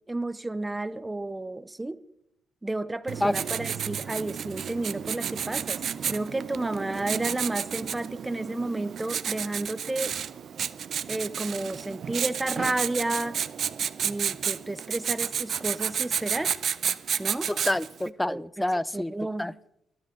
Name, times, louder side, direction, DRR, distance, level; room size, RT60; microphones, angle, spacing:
voice 1, 0.1-2.0 2.6-5.8 6.1-10.1 11.1-13.4 14.0-16.6 17.2-17.5 18.3-18.4 18.9-19.5, right 2 dB, 15° right, 0.8 m, -31 dB
Writing, 3.1-18.0, right 8 dB, 55° right, 0.6 m, -31 dB
voice 2, 17.5-19.5, left 1 dB, 10° left, 0.5 m, -28 dB
21.5 x 12.5 x 3.9 m
cardioid pair, 90°, 0 cm